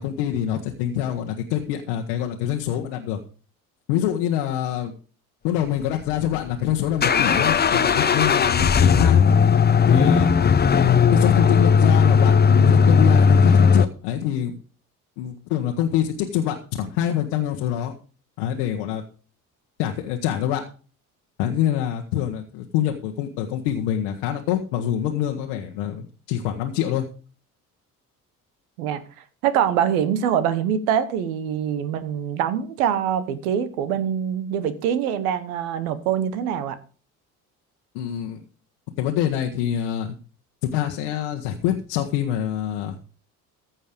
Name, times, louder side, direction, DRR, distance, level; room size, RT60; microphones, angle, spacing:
voice 1, 0.0-3.2 3.9-4.9 5.4-9.2 9.9-10.3 11.1-14.5 15.2-17.9 18.4-19.0 19.8-20.6 21.4-27.1 37.9-38.4 39.0-40.1 40.7-43.0, left 11 dB, 75° left, 1.2 m, -25 dB
sound 1, 6.0-13.9, left 6 dB, 25° left, 0.7 m, -16 dB
voice 2, 29.4-36.8, right 9 dB, 75° right, 1.2 m, -24 dB
15.0 x 5.6 x 5.1 m
hypercardioid pair, 55°, 43 cm